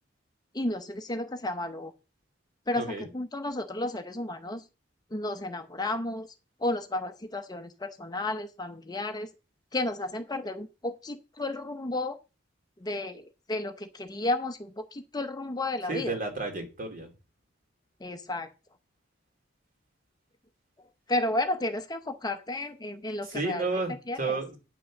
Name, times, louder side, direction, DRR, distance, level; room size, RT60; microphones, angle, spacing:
voice 1, 0.5-1.9 2.7-4.6 5.1-6.3 6.6-9.3 9.7-12.2 12.8-16.1 18.0-18.5 21.1-23.7 24.1-24.4, left 2 dB, 20° left, 8 dB, 0.8 m, -32 dB
voice 2, 2.7-3.1 15.9-17.1 23.2-24.6, right 3 dB, 45° right, 3 dB, 2.9 m, -32 dB
9.4 x 6.1 x 6.1 m, 0.30 s
head